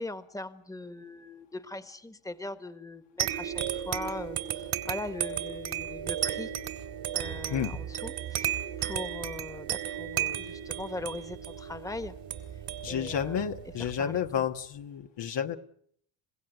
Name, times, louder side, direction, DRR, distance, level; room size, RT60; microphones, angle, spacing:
voice 1, 0.0-6.5 7.1-12.2 12.9-13.4 14.0-14.4, left 2 dB, 5° left, 11 dB, 1.6 m, -40 dB
sound 1, 3.2-14.3, right 11 dB, 70° right, 2.9 m, -34 dB
voice 2, 12.8-15.6, left 8 dB, 60° left, 6 dB, 1.7 m, -31 dB
29.0 x 16.5 x 9.3 m, 0.68 s
supercardioid pair, 75°, 47 cm